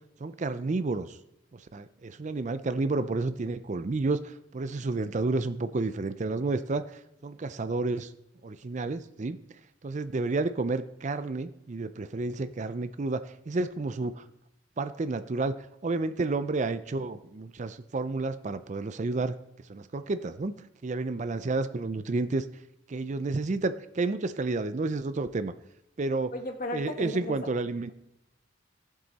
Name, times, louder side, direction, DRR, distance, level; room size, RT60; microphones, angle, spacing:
voice 1, 0.2-1.2 1.5-8.1 8.4-9.4 9.8-14.2 14.8-15.5 15.8-19.3 19.7-22.5 22.9-25.5 26.0-26.3 26.7-27.9, right 3 dB, 40° right, 12 dB, 0.5 m, -30 dB
voice 2, 26.3-27.4, left 1 dB, 45° left, 4 dB, 1.4 m, -35 dB
14.5 x 7.5 x 4.1 m, 0.85 s
head